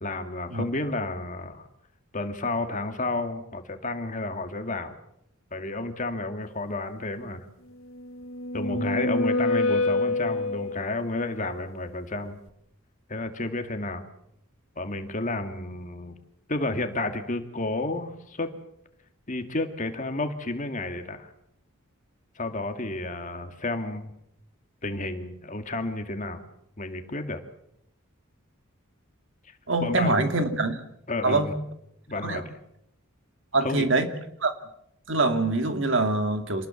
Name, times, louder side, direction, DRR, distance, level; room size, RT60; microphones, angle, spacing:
voice 1, 0.0-1.7 2.1-5.0 5.5-7.5 8.5-12.4 13.1-14.1 14.8-16.2 16.5-18.5 19.3-21.3 22.4-24.1 24.8-26.4 26.8-27.4 29.8-30.3 31.1-31.5 32.1-32.6 33.6-33.9, left 2 dB, 35° left, 6 dB, 2.4 m, -31 dB
sound 1, 8.0-11.0, left 2 dB, 75° left, 1.9 m, -26 dB
voice 2, 29.7-30.8 31.2-31.5 32.2-32.4 33.5-34.1 34.4-34.5 35.1-36.7, right 2 dB, 60° right, 7 dB, 2.4 m, -24 dB
27.5 x 19.5 x 7.3 m, 0.77 s
head